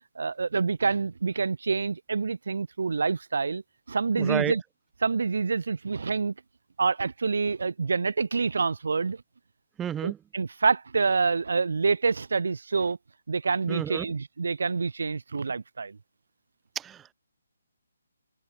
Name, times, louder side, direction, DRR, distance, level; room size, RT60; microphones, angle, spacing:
voice 1, 0.2-3.6 3.9-4.6 5.0-6.3 6.8-9.2 10.0-13.0 13.3-16.0, right 4 dB, 75° right, 5.3 m, -27 dB
voice 2, 4.2-4.5 9.8-10.2 13.7-14.1 16.8-17.1, right 9 dB, 10° right, 7.4 m, -31 dB
hypercardioid pair, 165°, 0 cm